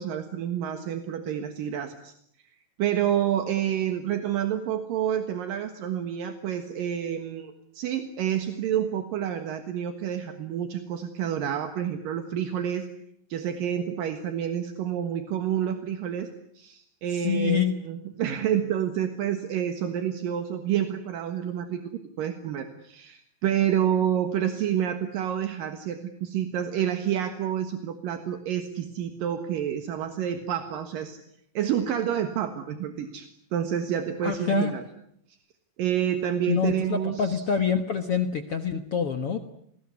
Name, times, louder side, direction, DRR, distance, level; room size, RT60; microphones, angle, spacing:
voice 1, 0.0-2.1 2.8-12.9 13.3-16.3 16.5-21.9 22.2-31.2 31.5-34.8 35.3-35.4 35.8-37.4, right 9 dB, 75° right, 8 dB, 3.1 m, -28 dB
voice 2, 17.2-17.7 34.2-34.7 36.5-39.4, left 7 dB, 55° left, 7 dB, 1.8 m, -26 dB
28.0 x 21.0 x 9.7 m, 0.70 s
omnidirectional pair, 4.1 m